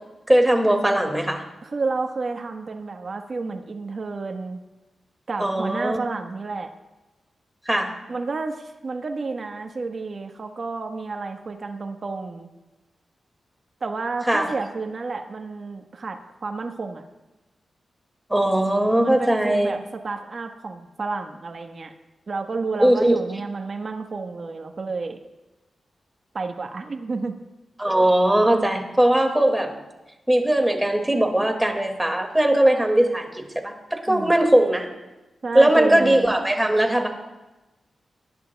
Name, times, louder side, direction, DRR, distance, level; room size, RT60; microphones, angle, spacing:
voice 1, 0.3-1.4 5.4-6.0 7.7-7.9 14.3-14.5 18.3-19.8 22.8-23.2 27.8-29.7 30.3-34.9 35.5-37.1, right 1 dB, 10° right, 3 dB, 2.0 m, -19 dB
voice 2, 1.6-4.6 5.3-6.7 8.1-12.5 13.8-17.0 19.0-19.8 20.0-21.9 22.3-25.2 26.3-27.3 34.1-34.3 35.4-36.3, right 3 dB, 50° right, 5 dB, 1.3 m, -30 dB
23.0 x 11.0 x 2.3 m, 1.1 s
cardioid pair, 75°, 0 cm